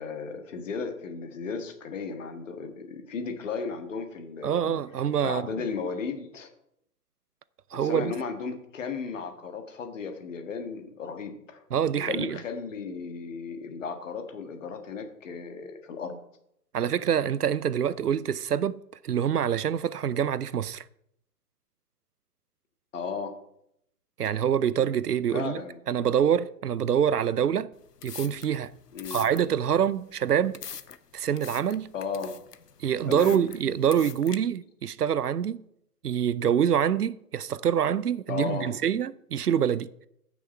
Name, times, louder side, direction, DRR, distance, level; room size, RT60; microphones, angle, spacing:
voice 1, 0.0-4.8 5.2-6.5 7.7-11.6 11.9-16.2 22.9-23.4 25.3-25.8 28.9-29.3 31.9-32.4 33.1-33.4 38.3-38.7, left 5 dB, 50° left, 1.8 m, -35 dB
voice 2, 4.4-5.4 7.7-8.1 11.7-12.4 16.7-20.8 24.2-25.6 25.9-27.7 28.0-28.7 29.1-30.6 31.1-31.9 32.8-35.6 36.0-39.9, right 8 dB, 75° right, 0.6 m, -26 dB
sound 1, 27.7-34.4, left 7 dB, 80° left, 0.8 m, -44 dB
15.0 x 6.3 x 4.4 m
figure-of-eight pair, 125°, 47 cm